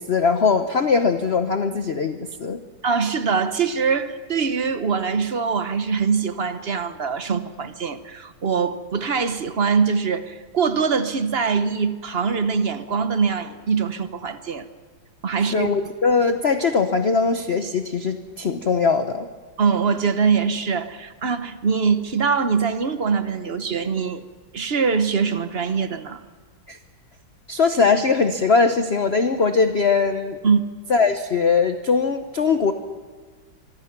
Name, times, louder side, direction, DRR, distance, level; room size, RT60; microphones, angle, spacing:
voice 1, 0.0-2.6 15.5-19.3 26.7-26.8 27.5-30.4 30.9-32.7, left 5 dB, 45° left, 0.9 m, -20 dB
voice 2, 2.8-14.7 15.2-15.7 19.6-24.2 24.5-26.2 30.4-30.6, right 5 dB, 40° right, 1.0 m, -23 dB
25.5 x 23.5 x 6.0 m
omnidirectional pair, 2.1 m